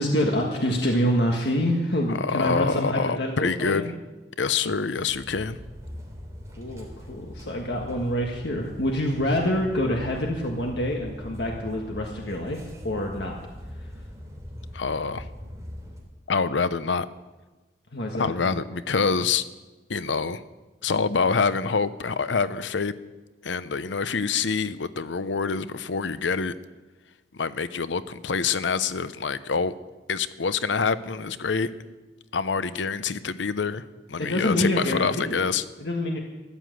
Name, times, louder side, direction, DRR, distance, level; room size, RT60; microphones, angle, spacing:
voice 1, 0.0-3.9 6.6-12.6 12.8-13.3 17.9-18.3 34.2-35.4 35.8-36.2, equal, 65° left, 1 dB, 1.7 m, -26 dB
voice 2, 2.1-3.9 4.4-5.6 14.7-15.2 16.3-17.1 18.1-19.4 19.9-20.4 20.8-22.9 23.4-26.5 27.3-29.7 30.1-31.7 32.3-33.8 34.1-35.6, left 5 dB, 85° left, 14 dB, 0.7 m, -26 dB
sound 1, 5.1-16.0, equal, 20° right, 3.2 m, -41 dB
14.5 x 12.0 x 7.8 m, 1.2 s
head